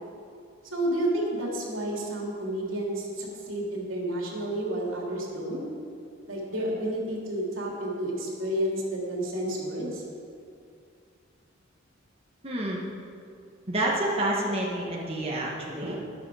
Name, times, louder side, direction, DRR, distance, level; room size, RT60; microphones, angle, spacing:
voice 1, 0.7-5.6 6.3-10.0, right 1 dB, 85° right, -3 dB, 3.2 m, -30 dB
voice 2, 12.4-12.8 13.7-16.0, right 1 dB, 30° right, -3 dB, 1.5 m, -28 dB
13.0 x 11.5 x 4.9 m, 2.4 s
head